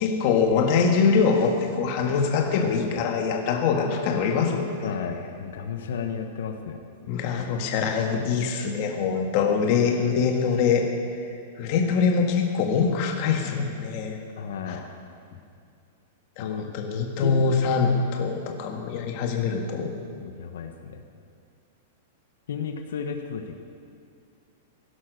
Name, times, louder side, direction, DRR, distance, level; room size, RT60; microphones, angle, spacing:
voice 1, 0.0-4.9 7.0-10.9 11.6-14.2 14.7-14.8 16.4-19.9, left 5 dB, 35° left, 3 dB, 1.6 m, -24 dB
voice 2, 2.6-3.1 4.8-6.8 14.4-14.8 16.4-16.7 17.2-17.5 20.2-21.1 22.5-23.5, left 6 dB, 75° left, 5 dB, 1.3 m, -33 dB
16.0 x 11.0 x 6.6 m, 2.3 s
supercardioid pair, 170°, 0 cm